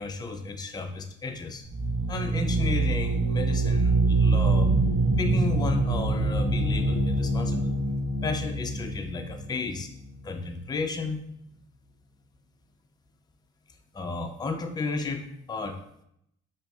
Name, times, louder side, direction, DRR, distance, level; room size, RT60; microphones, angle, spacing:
voice 1, 0.0-1.7 2.1-4.8 5.2-7.7 8.2-9.9 10.2-11.2 13.9-15.8, left 3 dB, 15° left, 6 dB, 0.3 m, -33 dB
sound 1, 1.6-10.3, right 2 dB, 45° right, 1.1 m, -25 dB
4.2 x 2.8 x 2.3 m, 0.74 s
cardioid pair, 90°, 30 cm